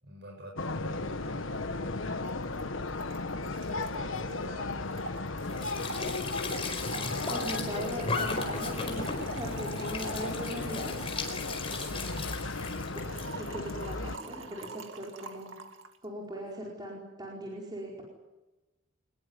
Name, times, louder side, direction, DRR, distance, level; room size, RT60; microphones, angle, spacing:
voice 1, 0.0-2.3 3.4-6.1 11.7-12.4, right 1 dB, 55° right, 2 dB, 6.9 m, -49 dB
sound 1, 0.6-14.2, left 3 dB, 75° left, 1.4 m, -35 dB
Trickle dribble / Fill (with liquid), 2.2-2.3 2.6-2.7 2.9-16.0, right 3 dB, 75° right, 2.3 m, -45 dB
Squeak / Sink (filling or washing) / Trickle dribble, 5.4-13.3, left 4 dB, 30° left, 4.7 m, -37 dB
voice 2, 7.3-11.1 12.9-15.5 16.0-18.0, right 1 dB, 20° right, -3 dB, 4.7 m, -40 dB
23.5 x 21.0 x 9.8 m, 1.1 s
head